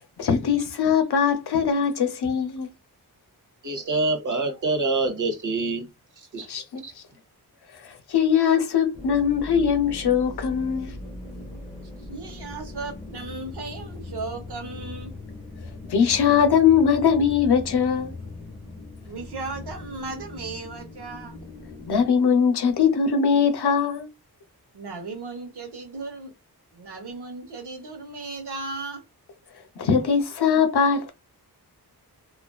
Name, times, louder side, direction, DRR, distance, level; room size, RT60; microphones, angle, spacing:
voice 1, 0.2-2.7 6.5-6.8 7.8-10.9 15.9-18.1 21.9-24.1 29.8-31.1, left 7 dB, 80° left, 0.6 m, -21 dB
voice 2, 3.6-5.9 6.3-6.5 6.8-6.9, right 3 dB, 55° right, 0.8 m, -25 dB
sound 1, 8.9-22.1, left 2 dB, 15° left, 0.8 m, -39 dB
voice 3, 12.0-15.1 19.1-21.4 24.7-26.3 26.7-29.0, right 3 dB, 85° right, 0.9 m, -36 dB
2.4 x 2.3 x 2.2 m
wide cardioid pair, 120°, 39 cm